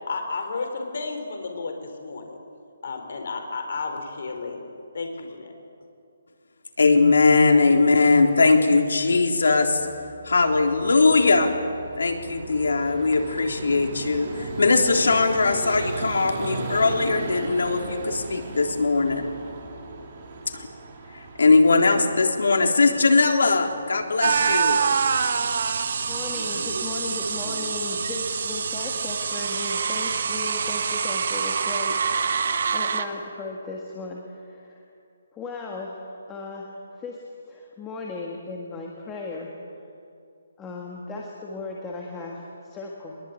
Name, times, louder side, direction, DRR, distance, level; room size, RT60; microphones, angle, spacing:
voice 1, 0.0-2.4 2.8-4.7 4.9-5.5, left 4 dB, 50° left, 4 dB, 4.0 m, -32 dB
voice 2, 6.8-9.9 10.2-11.5 12.0-19.3 20.5-20.7 21.1-24.8, left 3 dB, 80° left, 3 dB, 3.6 m, -20 dB
Vehicle, 9.7-24.4, right 4 dB, 25° right, 2.9 m, -37 dB
sound 1, 24.2-33.0, right 6 dB, 50° right, 1.4 m, -25 dB
voice 3, 26.1-34.8 35.3-39.5 40.6-43.2, left 3 dB, 10° left, -2 dB, 1.7 m, -36 dB
21.5 x 21.5 x 9.3 m, 2.5 s
hypercardioid pair, 175°, 0 cm